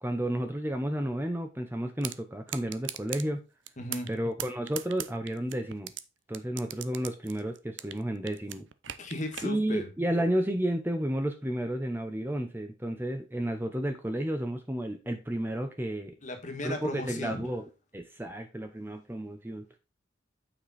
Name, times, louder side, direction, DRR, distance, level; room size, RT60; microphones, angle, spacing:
voice 1, 0.0-3.4 4.1-5.9 6.3-8.6 9.4-16.1 16.6-17.6 17.9-19.6, right 1 dB, 10° right, 6 dB, 0.7 m, -32 dB
sound 1, 2.0-2.2 2.5-3.2 3.7-4.1 4.4-6.0 6.3-8.0 8.3-9.5, right 12 dB, 70° right, 0.6 m, -38 dB
voice 2, 3.8-4.1 9.0-9.9 16.2-17.4, left 1 dB, 40° left, 5 dB, 1.6 m, -35 dB
8.8 x 5.0 x 4.1 m, 0.28 s
head